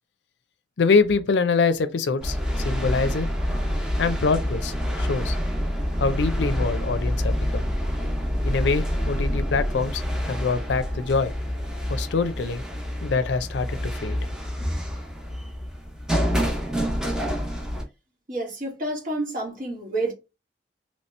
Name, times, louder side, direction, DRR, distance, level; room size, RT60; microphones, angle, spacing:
voice 1, 0.8-2.4 2.6-3.3 4.0-5.4 6.0-7.6 8.4-11.3 11.9-12.6 13.0-14.2, left 4 dB, 75° left, 0.5 m, -24 dB
sound 1, 2.2-17.8, equal, 5° right, 0.7 m, -27 dB
voice 2, 18.3-20.1, right 2 dB, 50° right, 1.3 m, -29 dB
3.1 x 2.8 x 3.2 m
head